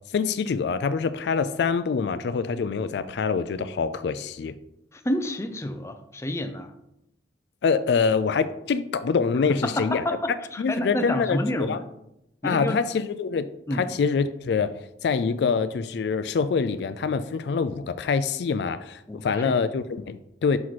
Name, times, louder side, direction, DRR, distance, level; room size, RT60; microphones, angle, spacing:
voice 1, 0.1-4.5 7.6-10.0 10.6-11.8 12.4-14.7 15.0-20.6, left 5 dB, 70° left, 13 dB, 0.3 m, -25 dB
voice 2, 4.9-6.7 9.6-11.8 12.4-12.8 13.7-13.9 19.1-19.5, left 1 dB, 15° left, 7 dB, 0.5 m, -29 dB
5.9 x 4.6 x 4.1 m, 0.83 s
head